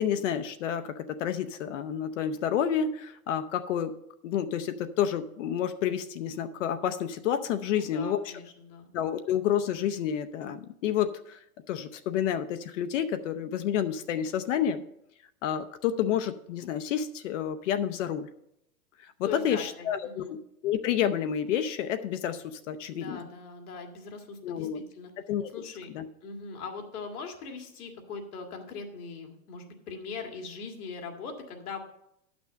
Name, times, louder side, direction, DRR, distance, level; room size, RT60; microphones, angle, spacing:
voice 1, 0.0-3.9 4.2-8.3 8.9-11.4 11.7-14.8 15.4-18.3 19.0-23.2 24.4-24.8 25.2-25.5 25.9-26.1, left 9 dB, 55° left, 9 dB, 0.7 m, -29 dB
voice 2, 7.7-8.9 19.2-20.3 22.9-25.1 25.5-25.9 26.2-31.8, left 5 dB, 85° left, 3 dB, 2.0 m, -41 dB
10.0 x 6.0 x 5.5 m, 0.79 s
supercardioid pair, 155°, 43 cm